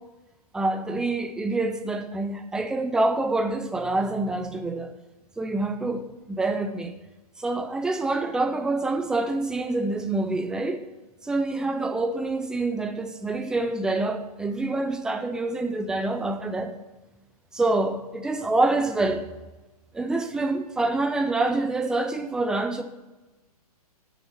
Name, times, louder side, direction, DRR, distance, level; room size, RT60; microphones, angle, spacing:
voice 1, 0.5-4.9 5.4-6.9 7.4-10.8 11.2-16.7 17.5-19.2 19.9-22.8, right 2 dB, 5° right, 0.5 m, -26 dB
7.1 x 6.8 x 7.3 m
figure-of-eight pair, 115°, 20 cm